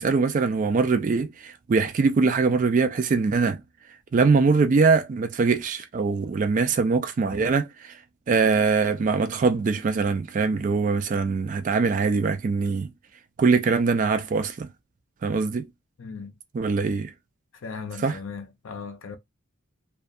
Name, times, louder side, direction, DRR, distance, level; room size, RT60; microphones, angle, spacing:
voice 1, 0.0-3.6 4.1-7.9 8.3-12.9 13.4-14.7 15.2-15.7 16.5-17.1 18.0-18.2, right 4 dB, 40° right, 0.3 m, -22 dB
voice 2, 16.0-16.4 17.5-19.2, left 5 dB, 65° left, 0.5 m, -37 dB
2.6 x 2.3 x 2.3 m
head